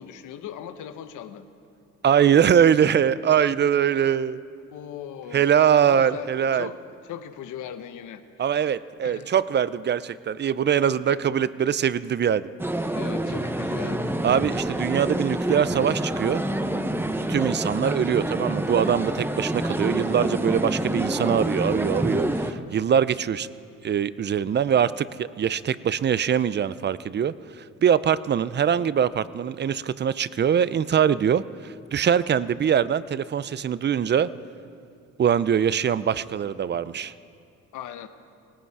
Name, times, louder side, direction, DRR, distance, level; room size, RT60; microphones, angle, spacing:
voice 1, 0.0-1.4 4.7-5.5 5.8-6.8 7.0-8.5 9.0-9.4 11.0-11.2 12.9-14.2 37.7-38.1, left 9 dB, 85° left, 10 dB, 1.0 m, -38 dB
voice 2, 2.0-4.4 5.3-6.7 8.4-12.5 14.2-16.4 17.3-23.5 23.8-34.3 35.2-37.1, right 8 dB, 35° right, 17 dB, 0.5 m, -22 dB
sound 1, 12.6-22.5, right 1 dB, 5° right, 0.8 m, -27 dB
18.5 x 16.0 x 4.7 m, 2.4 s
cardioid pair, 90°, 30 cm